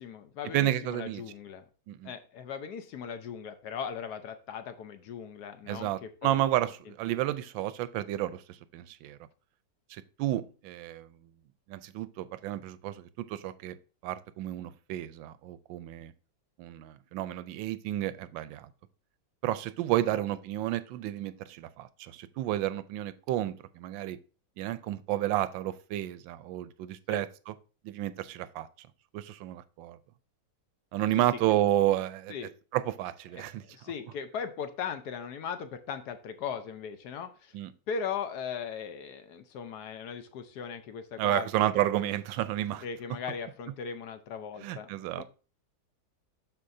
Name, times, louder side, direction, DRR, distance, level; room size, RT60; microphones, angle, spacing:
voice 1, 0.0-1.6 2.0-6.4 27.1-27.2 31.2-31.3 32.3-32.5 33.3-37.5 37.9-42.1 42.8-45.2, left 7 dB, 65° left, 1.2 m, -38 dB
voice 2, 0.5-1.2 1.9-2.1 5.7-9.2 9.9-11.1 11.7-13.8 14.0-16.1 16.6-18.7 19.4-24.2 24.6-27.5 27.8-28.9 29.1-30.0 30.9-32.3 32.7-33.6 37.5-37.7 41.2-42.8 44.6-45.2, right 13 dB, 80° right, 1.3 m, -31 dB
12.0 x 4.4 x 2.6 m
omnidirectional pair, 2.1 m